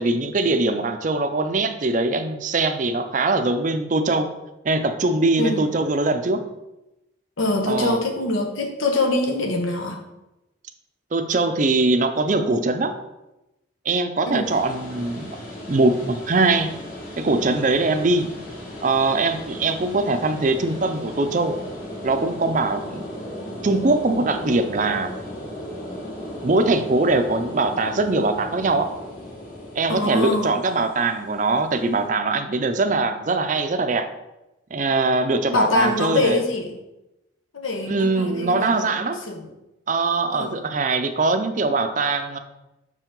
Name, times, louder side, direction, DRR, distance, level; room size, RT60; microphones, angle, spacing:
voice 1, 0.0-4.3 4.6-6.4 7.7-8.0 11.1-12.9 13.9-15.4 15.7-16.7 17.2-18.3 18.8-21.5 22.0-23.0 23.6-25.1 26.4-28.9 29.7-34.1 34.7-36.4 37.9-39.2 39.9-42.4, right 3 dB, 40° right, 8 dB, 0.5 m, -22 dB
voice 2, 5.4-5.7 7.4-10.0 14.3-14.5 29.9-30.5 35.5-36.8 37.5-38.9 39.3-39.4 40.3-40.5, left 2 dB, 90° left, 4 dB, 1.0 m, -24 dB
sound 1, 14.4-32.1, equal, 45° left, 1.7 m, -36 dB
6.3 x 4.5 x 3.8 m, 0.95 s
head